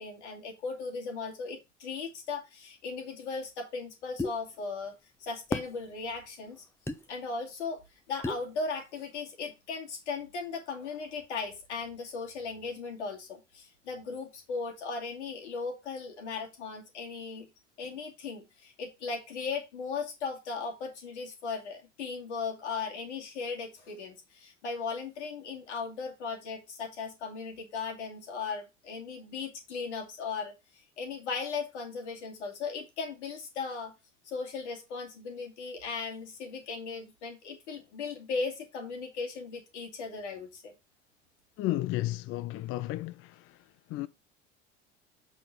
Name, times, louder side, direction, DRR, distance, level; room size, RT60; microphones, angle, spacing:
voice 1, 0.0-6.7 7.1-7.8 8.1-17.5 17.8-33.9 34.2-40.7, left 4 dB, 75° left, 2.5 m, -37 dB
sound 1, 4.2-4.4 5.5-5.7 6.9-7.0 8.2-8.5, left 2 dB, 5° left, 0.9 m, -32 dB
voice 2, 41.6-43.4 43.9-44.1, left 16 dB, 40° left, 0.5 m, -32 dB
7.6 x 4.2 x 6.5 m
figure-of-eight pair, 70°, 35 cm